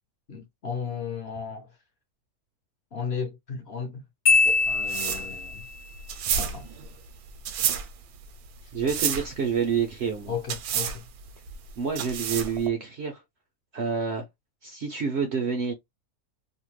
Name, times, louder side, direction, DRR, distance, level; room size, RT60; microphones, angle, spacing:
voice 1, 0.3-1.7 2.9-4.0 4.7-5.6 6.3-6.7 10.3-11.0, left 6 dB, 50° left, 0.9 m, -34 dB
Marimba xylophone, 4.3-5.7, left 4 dB, 85° left, 1.1 m, -23 dB
sound 1, 4.3-12.7, right 8 dB, 80° right, 1.1 m, -31 dB
voice 2, 8.7-10.4 11.8-13.2 13.7-14.3 14.6-15.7, right 6 dB, 60° right, 0.7 m, -28 dB
2.7 x 2.2 x 3.1 m
omnidirectional pair, 1.6 m